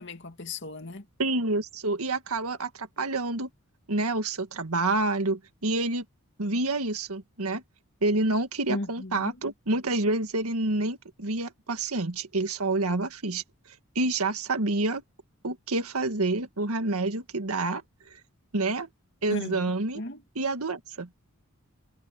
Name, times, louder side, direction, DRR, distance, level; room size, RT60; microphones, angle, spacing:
voice 1, 0.0-1.1 8.7-9.4 19.3-19.6 19.9-20.2, left 2 dB, 55° left, 2.4 m, -35 dB
voice 2, 1.2-3.5 3.9-6.0 6.4-7.6 8.0-13.4 14.0-15.0 15.4-17.8 18.1-18.2 18.5-18.9 19.2-20.0 20.4-21.1, right 2 dB, 85° right, 1.8 m, -28 dB
head